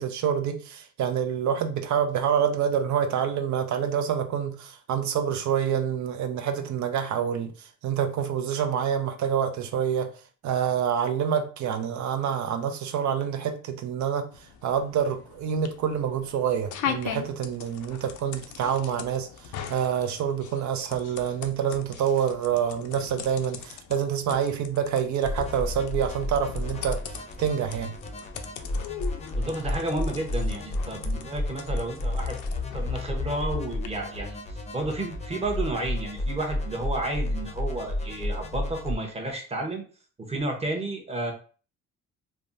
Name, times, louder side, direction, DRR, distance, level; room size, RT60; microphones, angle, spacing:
voice 1, 0.0-10.1 10.4-14.3 14.6-19.3 19.7-27.9, right 8 dB, 70° right, 0.6 m, -27 dB
sound 1, 14.3-33.9, left 8 dB, 70° left, 0.5 m, -41 dB
sound 2, 25.2-38.9, left 1 dB, 20° left, 0.6 m, -32 dB
voice 2, 29.3-32.4 32.7-39.8 40.2-41.3, right 2 dB, 20° right, 0.8 m, -31 dB
3.3 x 2.1 x 2.6 m
cardioid pair, 90°, 30 cm